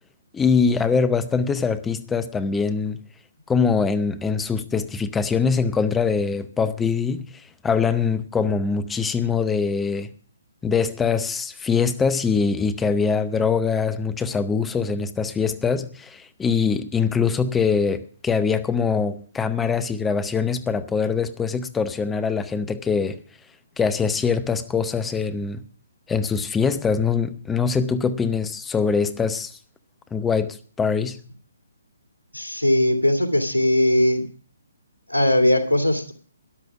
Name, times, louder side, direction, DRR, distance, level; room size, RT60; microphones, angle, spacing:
voice 1, 0.3-3.0 3.5-10.1 10.6-23.2 23.8-25.6 26.1-29.6 30.1-31.2, left 5 dB, 10° left, 0.7 m, -23 dB
voice 2, 32.3-34.3 35.1-36.1, left 1 dB, 90° right, 2.7 m, -19 dB
13.0 x 11.0 x 5.9 m
figure-of-eight pair, 135°, 0 cm